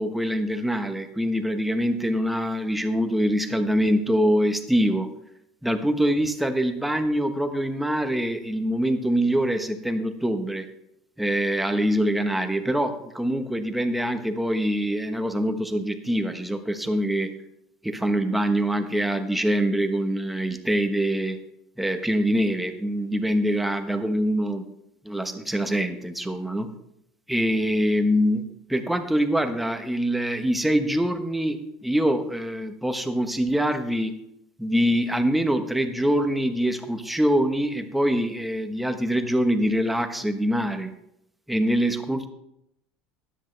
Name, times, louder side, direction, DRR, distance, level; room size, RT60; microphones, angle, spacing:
voice 1, 0.0-5.1 5.6-10.7 11.2-17.3 17.8-21.4 21.8-24.7 25.0-26.7 27.3-34.2 34.6-40.9 41.5-42.3, equal, 5° right, 7 dB, 1.1 m, -24 dB
13.0 x 10.5 x 3.3 m, 0.81 s
supercardioid pair, 110°, 3 cm